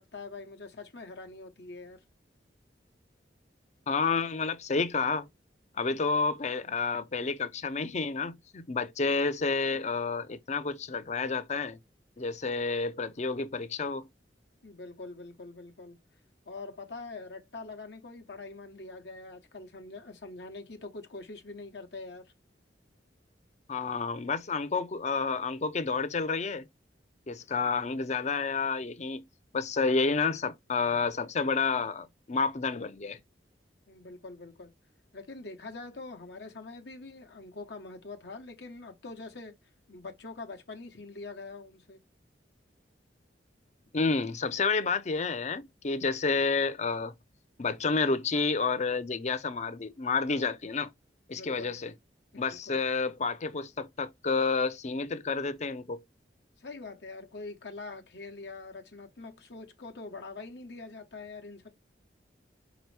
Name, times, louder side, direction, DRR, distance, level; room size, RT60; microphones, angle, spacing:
voice 1, 0.0-2.0 14.6-16.0 16.5-22.3 33.9-34.7 35.1-39.6 39.9-42.0 51.3-51.8 52.3-52.8 56.6-61.7, left 3 dB, 70° left, 1.0 m, -44 dB
voice 2, 3.9-5.3 5.8-11.8 12.2-14.1 23.7-26.7 27.3-29.2 29.5-33.2 43.9-47.1 47.6-50.9 51.3-51.9 52.4-56.0, left 4 dB, 40° left, 0.6 m, -30 dB
5.1 x 3.0 x 3.3 m
head